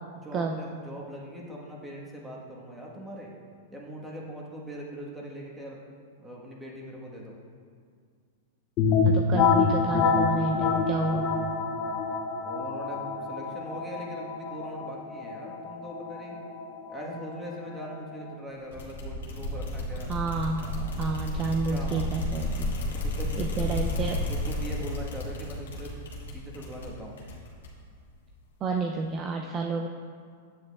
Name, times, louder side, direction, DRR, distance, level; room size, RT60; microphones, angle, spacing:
voice 1, 0.1-3.3 3.7-5.8 6.2-7.4 12.4-16.4 16.9-20.1 20.5-21.1 21.6-22.1 22.9-23.8 24.2-25.9 26.3-27.1, equal, 10° right, -3 dB, 1.3 m, -41 dB
sound 1, 8.8-18.3, left 5 dB, 40° left, 0.6 m, -27 dB
voice 2, 9.0-11.4 20.1-20.7 21.0-22.7 23.4-24.2 28.6-29.9, right 4 dB, 30° right, 3 dB, 0.4 m, -30 dB
sound 2, 18.7-27.9, left 1 dB, 90° left, 1.3 m, -32 dB
8.5 x 7.7 x 2.3 m, 2.1 s
hypercardioid pair, 125°, 0 cm